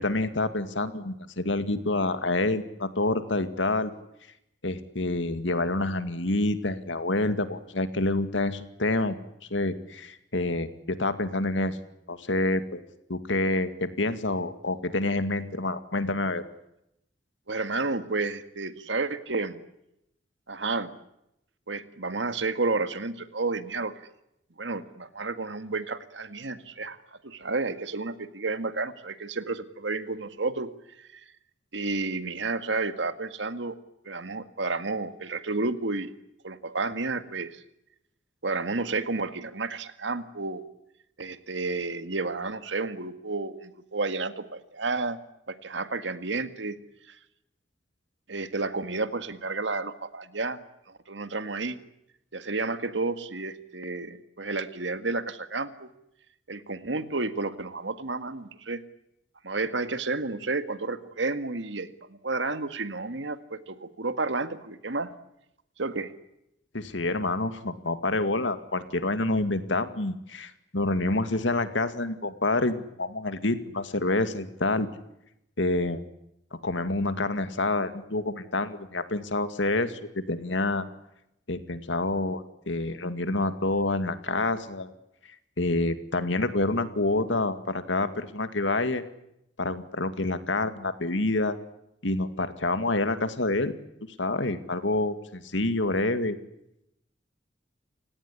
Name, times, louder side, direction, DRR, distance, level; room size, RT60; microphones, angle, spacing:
voice 1, 0.0-3.9 4.6-9.2 9.5-11.8 12.1-12.8 13.1-16.4 66.7-74.9 75.6-76.0 76.6-80.9 81.5-84.9 85.6-89.0 89.6-91.6 92.0-93.8 94.2-96.4, left 2 dB, 85° left, 10 dB, 2.2 m, -27 dB
voice 2, 17.5-19.6 20.5-20.9 21.7-23.9 24.6-27.0 27.2-30.7 31.0-31.3 31.7-33.8 34.0-36.1 36.4-37.6 38.4-40.6 41.2-45.2 45.5-46.8 47.1-47.2 48.3-51.8 52.3-55.9 56.5-58.8 59.4-65.1 65.8-66.1, right 3 dB, 75° right, 10 dB, 1.9 m, -31 dB
29.5 x 17.5 x 9.9 m, 0.82 s
head